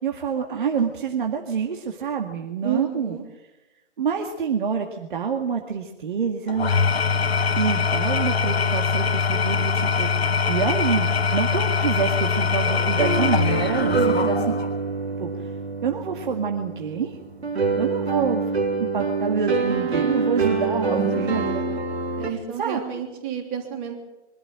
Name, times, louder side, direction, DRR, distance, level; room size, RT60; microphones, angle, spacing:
voice 1, 0.0-3.2 4.0-6.7 7.6-10.1 10.5-14.5 15.2-15.5 15.8-17.2 17.8-18.5 18.8-21.4 22.6-22.8, right 6 dB, 45° right, 3 dB, 2.1 m, -27 dB
voice 2, 2.6-3.2 13.9-14.6 20.9-21.7 22.2-24.0, right 7 dB, 20° right, 4 dB, 3.2 m, -30 dB
Engine / Tools, 6.5-14.8, left 5 dB, 60° left, 1.3 m, -23 dB
sound 1, 12.6-22.3, right 4 dB, 65° right, 3.5 m, -25 dB
23.0 x 13.0 x 8.9 m, 1.0 s
figure-of-eight pair, 150°, 35 cm